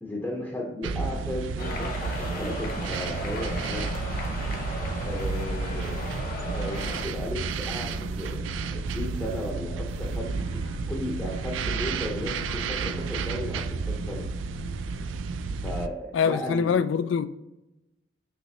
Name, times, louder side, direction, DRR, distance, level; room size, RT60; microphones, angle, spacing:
voice 1, 0.0-3.9 5.0-5.9 6.5-10.5 10.9-14.3 15.6-16.7, left 1 dB, 10° left, 0.7 m, -35 dB
sound 1, 0.8-15.9, right 4 dB, 80° right, 0.3 m, -31 dB
sound 2, 1.6-7.1, left 1 dB, 45° left, 0.9 m, -36 dB
sound 3, 2.0-2.5 3.0-3.6 3.9-4.9 5.2-5.5 5.8-6.2 6.7-8.4 8.9-9.5 9.9-10.8 11.2-11.9 12.2-12.5 12.8-13.1, right 1 dB, 25° right, 0.6 m, -48 dB
voice 2, 16.1-17.3, left 6 dB, 80° left, 0.3 m, -24 dB
5.8 x 3.1 x 2.7 m
head